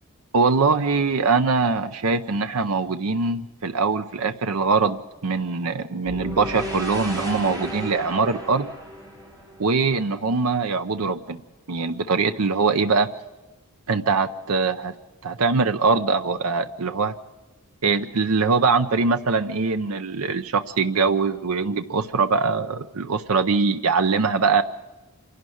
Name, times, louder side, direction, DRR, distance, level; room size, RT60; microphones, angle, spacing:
voice 1, 0.3-8.7 9.6-11.4 11.7-13.1 13.9-14.9 15.2-17.1 17.8-24.6, right 4 dB, 85° right, 9 dB, 0.7 m, -22 dB
sound 1, 6.0-10.3, equal, 20° right, 4.2 m, -34 dB
26.5 x 12.0 x 9.2 m, 1.1 s
head